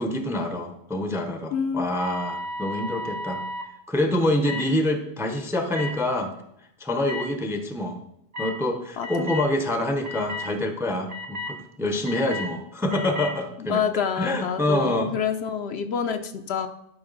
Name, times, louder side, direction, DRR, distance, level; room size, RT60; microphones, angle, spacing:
voice 1, 0.0-3.4 3.9-6.3 6.8-8.0 8.4-13.8 14.2-15.2, left 1 dB, 5° right, 6 dB, 0.6 m, -26 dB
voice 2, 1.5-1.9 9.0-9.3 13.7-16.7, left 7 dB, 65° left, 8 dB, 0.8 m, -27 dB
sound 1, 1.8-3.7 4.4-4.7 5.7-5.9 7.0-7.2 8.3-8.5 9.0-9.5 10.0-10.5 11.1-11.5 12.0-12.5 12.9-13.3, left 1 dB, 40° right, 0.8 m, -33 dB
11.0 x 4.8 x 3.9 m, 0.78 s
omnidirectional pair, 1.2 m